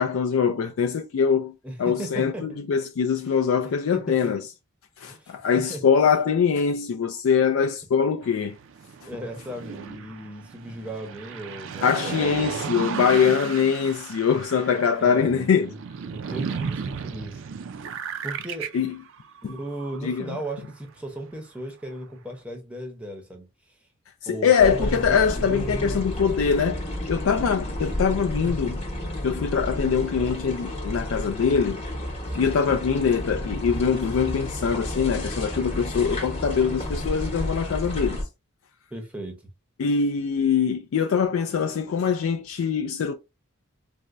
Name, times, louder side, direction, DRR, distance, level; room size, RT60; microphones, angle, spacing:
voice 1, 0.0-1.5 1.8-4.4 5.0-8.5 11.8-15.7 18.7-18.9 19.4-19.5 20.0-20.4 24.2-28.8 29.2-31.8 32.4-38.2 39.8-43.1, left 6 dB, 70° left, 0.3 m, -23 dB
voice 2, 1.6-2.4 3.9-4.3 5.1-5.4 5.7-5.8 9.1-12.7 15.0-15.8 16.1-17.4 18.2-18.7 19.4-23.5 24.3-26.4 32.3-32.8 38.9-39.5, right 1 dB, 5° right, 0.7 m, -36 dB
sound 1, 8.2-20.5 21.0-21.1, right 6 dB, 60° right, 0.4 m, -35 dB
sound 2, 24.6-38.2, left 1 dB, 30° left, 0.9 m, -31 dB
4.1 x 2.1 x 2.4 m
head